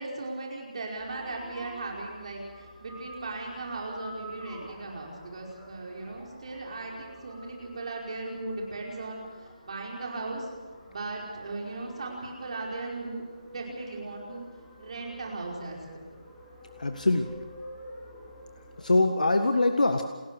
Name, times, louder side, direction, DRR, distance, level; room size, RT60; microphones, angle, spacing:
voice 1, 0.0-10.5 10.9-14.5 14.8-16.1, right 3 dB, 50° right, -1 dB, 5.1 m, -37 dB
sound 1, 0.9-18.9, left 1 dB, 5° left, 4.0 m, -48 dB
voice 2, 16.8-17.3 18.8-20.0, left 2 dB, 75° left, 6 dB, 1.7 m, -23 dB
29.0 x 15.5 x 6.5 m, 1.3 s
figure-of-eight pair, 160°, 4 cm